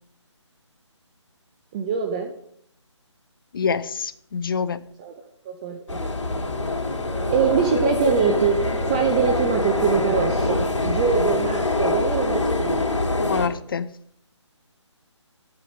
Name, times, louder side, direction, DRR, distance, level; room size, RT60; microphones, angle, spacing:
voice 1, 1.7-2.3 5.0-5.1 5.5-6.1 6.5-6.6 7.3-8.6 8.9-12.8, right 6 dB, 15° right, 4 dB, 0.6 m, -23 dB
voice 2, 3.5-4.8 13.2-13.9, left 6 dB, 45° left, 14 dB, 0.7 m, -26 dB
sound 1, 5.9-13.5, left 2 dB, 75° left, 2.8 m, -24 dB
Bowed string instrument, 6.4-11.6, right 3 dB, 90° right, 2.9 m, -38 dB
11.5 x 8.6 x 5.0 m, 0.66 s
figure-of-eight pair, 160°, 16 cm